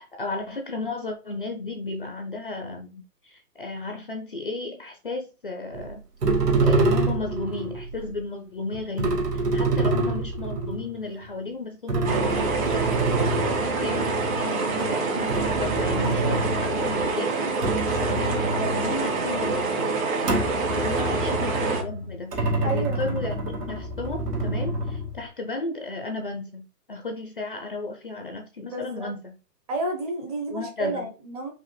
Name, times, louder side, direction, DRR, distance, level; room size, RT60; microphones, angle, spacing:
voice 1, 0.0-6.0 6.6-13.4 13.8-17.5 18.0-19.9 20.7-29.4 30.5-31.1, left 3 dB, 35° left, 4 dB, 0.5 m, -34 dB
sound 1, 5.7-5.9 6.2-7.9 8.7-11.3 11.9-17.1 17.5-19.7 20.2-25.3, right 2 dB, 70° right, 1.8 m, -27 dB
sound 2, 12.0-21.8, right 4 dB, 55° right, 1.9 m, -26 dB
voice 2, 22.6-23.0 28.7-29.1 29.7-31.5, right 2 dB, 25° right, 2 dB, 0.8 m, -31 dB
4.9 x 2.6 x 3.2 m, 0.33 s
hypercardioid pair, 155°, 49 cm